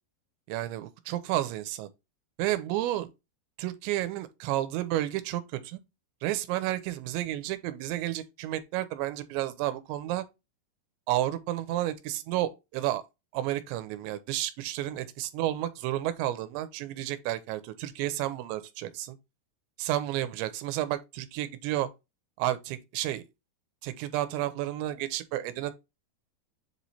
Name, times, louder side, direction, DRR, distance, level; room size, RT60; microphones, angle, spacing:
voice 1, 0.5-1.9 2.4-3.1 3.6-5.8 6.2-10.2 11.1-13.0 13.3-19.2 19.8-21.9 22.4-23.2 23.8-25.7, right 14 dB, 85° right, 3.0 m, -31 dB
7.5 x 3.1 x 4.1 m
omnidirectional pair, 5.1 m